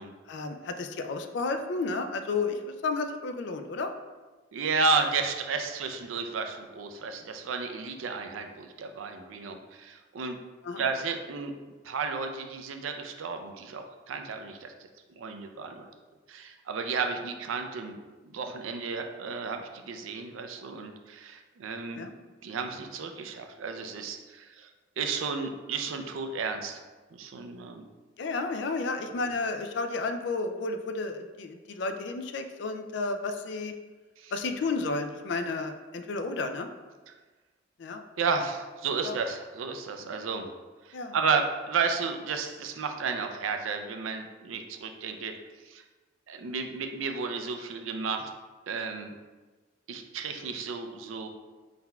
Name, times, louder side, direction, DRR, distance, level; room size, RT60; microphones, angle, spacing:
voice 1, 0.3-3.9 10.6-10.9 17.2-17.3 21.9-22.1 28.2-33.7 34.3-36.7 37.8-38.0 39.0-39.1 40.9-41.2, left 3 dB, 65° left, 7 dB, 0.3 m, -32 dB
voice 2, 4.5-10.4 10.8-11.5 11.8-14.7 15.2-15.9 16.3-18.0 18.3-22.1 22.4-24.7 25.0-26.8 27.1-27.8 34.2-34.3 38.2-40.5 40.8-45.3 45.6-45.8 46.3-48.3 48.7-49.1 49.9-51.3, right 5 dB, 85° right, 5 dB, 0.4 m, -32 dB
4.2 x 3.9 x 2.3 m, 1.3 s
head